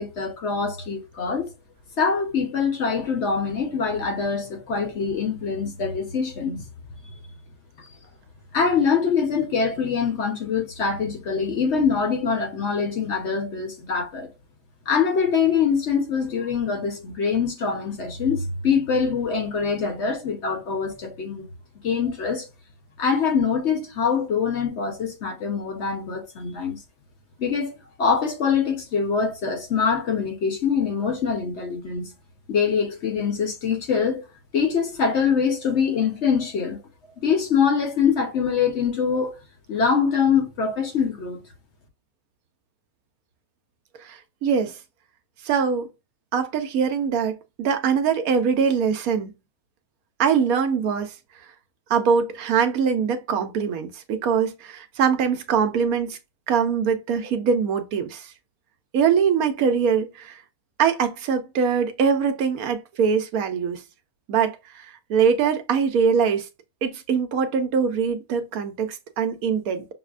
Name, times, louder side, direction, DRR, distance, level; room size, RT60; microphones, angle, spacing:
voice 1, 0.0-1.5 2.0-6.6 8.5-14.3 14.9-21.5 21.8-22.5 23.0-26.8 27.4-32.1 32.5-34.2 34.5-36.8 37.2-39.4 39.7-41.4, left 6 dB, 55° left, 1.1 m, -24 dB
voice 2, 44.0-44.8 45.4-45.9 46.3-49.3 50.2-51.1 51.9-56.2 56.5-58.3 58.9-60.4 60.8-63.8 64.3-66.5 66.8-69.9, right 6 dB, 80° right, 1.1 m, -23 dB
6.1 x 2.1 x 2.5 m
omnidirectional pair, 1.5 m